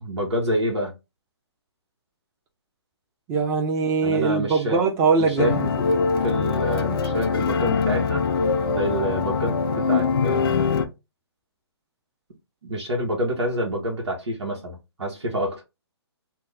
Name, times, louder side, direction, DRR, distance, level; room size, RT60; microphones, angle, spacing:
voice 1, 0.0-0.9 4.0-4.8 5.2-5.6 6.2-8.2 8.7-10.9 12.6-15.6, equal, 85° right, 1.2 m, -27 dB
voice 2, 3.3-5.9, right 5 dB, 20° right, 0.7 m, -22 dB
sound 1, 5.4-10.9, left 5 dB, 55° left, 0.5 m, -23 dB
2.8 x 2.2 x 3.6 m
hypercardioid pair, 145°, 14 cm